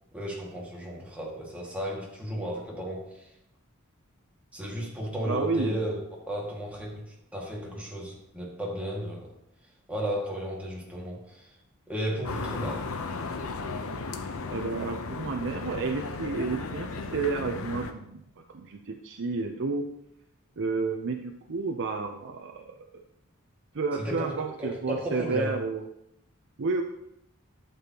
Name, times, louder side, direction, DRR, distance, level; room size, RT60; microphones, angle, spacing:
voice 1, 0.1-3.3 4.5-6.0 6.3-9.3 9.9-11.6 11.9-12.9 24.0-25.6, equal, 5° right, -4 dB, 1.9 m, -34 dB
voice 2, 5.2-5.8 14.5-18.2 18.5-19.9 20.6-22.9 23.7-25.8 26.6-26.8, right 4 dB, 60° right, 3 dB, 0.6 m, -31 dB
sound 1, 12.2-17.9, left 4 dB, 75° left, 0.8 m, -35 dB
11.5 x 6.9 x 2.9 m, 0.82 s
head